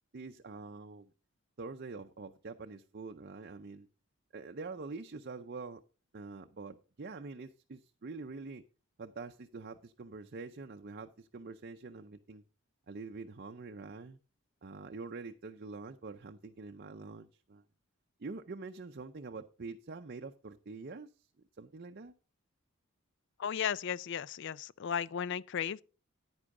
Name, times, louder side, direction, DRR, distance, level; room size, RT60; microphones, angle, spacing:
voice 1, 0.1-1.1 1.6-3.9 4.3-5.8 6.1-8.6 9.0-12.4 12.9-14.2 14.6-17.6 18.2-21.1 21.6-22.1, right 3 dB, 50° right, 0.6 m, -45 dB
voice 2, 23.4-25.8, left 8 dB, 55° left, 0.4 m, -35 dB
9.9 x 9.6 x 3.7 m
head